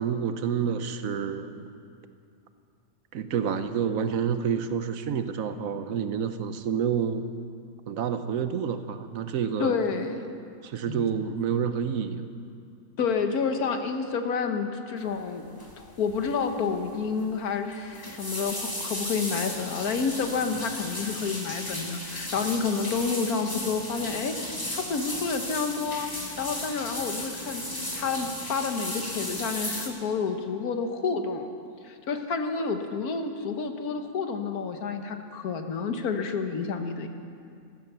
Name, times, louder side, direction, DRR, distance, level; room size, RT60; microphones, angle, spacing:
voice 1, 0.0-1.7 3.1-7.3 7.9-9.8 10.6-12.3, right 7 dB, 70° right, 10 dB, 1.1 m, -28 dB
voice 2, 9.6-10.2 10.9-11.0 13.0-15.4 15.8-26.1 26.4-27.6 27.9-31.5 31.8-37.1, left 5 dB, 80° left, 6 dB, 1.6 m, -29 dB
sound 1, 15.6-15.8 16.1-16.4 16.7-16.8 17.7-29.9, left 1 dB, 15° left, 1.8 m, -35 dB
14.5 x 13.5 x 6.8 m, 2.4 s
omnidirectional pair, 1.6 m